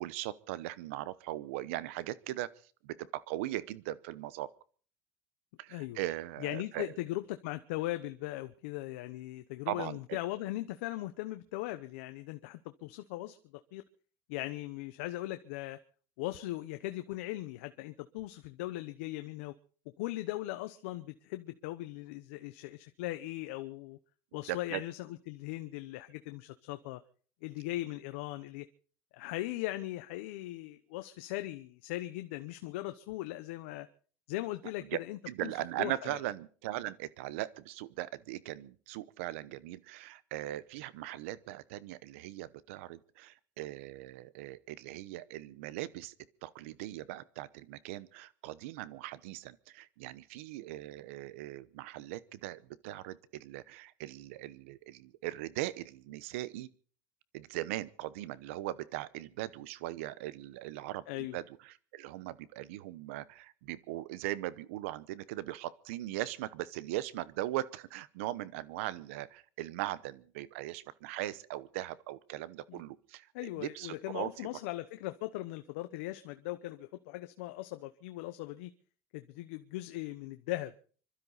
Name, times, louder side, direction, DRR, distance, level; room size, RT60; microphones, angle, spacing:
voice 1, 0.0-2.5 2.8-4.5 5.6-6.9 9.7-10.2 24.5-24.8 34.8-35.0 35.3-46.1 46.4-56.7 57.3-74.5, right 15 dB, 90° right, 0.9 m, -39 dB
voice 2, 5.7-6.0 6.4-13.4 13.7-13.8 14.3-15.8 16.2-19.5 20.0-24.0 24.3-25.0 25.3-27.0 27.4-28.6 29.1-33.9 34.3-35.9 61.1-61.4 72.7-72.8 73.3-78.7 79.1-80.7, left 17 dB, 90° left, 0.9 m, -39 dB
26.0 x 12.5 x 4.1 m
supercardioid pair, 125°, 7 cm